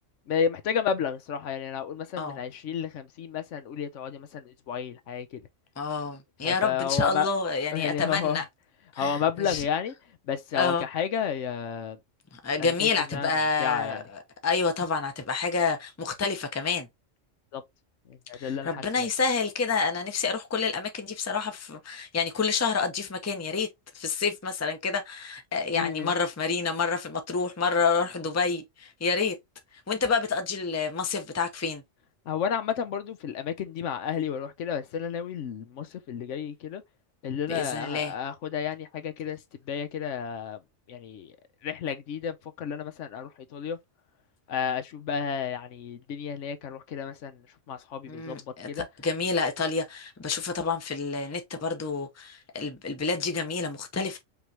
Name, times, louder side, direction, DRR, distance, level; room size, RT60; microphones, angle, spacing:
voice 1, 0.3-5.4 6.4-7.3 7.7-8.4 9.0-9.9 10.3-12.0 12.6-13.3 13.6-14.0 17.5-17.6 18.1-19.1 25.7-26.1 32.3-36.8 37.2-39.4 39.7-40.6 40.9-41.3 41.6-43.8 44.5-48.8, left 7 dB, 75° left, 1.0 m, -31 dB
voice 2, 5.8-8.4 8.9-9.6 10.5-10.8 12.3-14.0 14.4-16.9 18.4-23.7 23.9-29.4 29.9-31.8 37.5-38.1 48.1-54.2, left 5 dB, 15° left, 0.6 m, -28 dB
5.2 x 3.1 x 2.8 m
omnidirectional pair, 1.3 m